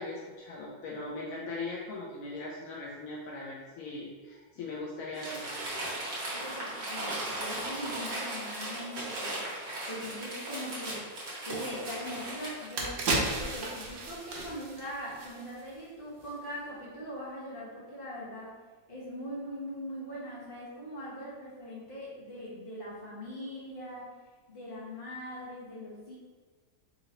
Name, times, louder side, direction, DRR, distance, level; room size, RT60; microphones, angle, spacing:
voice 1, 0.0-5.6, left 2 dB, 70° left, -4 dB, 0.7 m, -39 dB
Crumpling crinkling, 5.1-12.7, right 1 dB, 55° right, 1.6 m, -37 dB
voice 2, 6.2-11.1 11.4-13.1 13.4-18.6 18.9-24.2 24.5-26.2, equal, 30° left, -8 dB, 1.4 m, -41 dB
sound 1, 12.1-12.2 12.5-15.8 16.1-16.3, right 2 dB, 75° right, 1.5 m, -34 dB
4.0 x 2.8 x 4.3 m, 1.4 s
omnidirectional pair, 2.0 m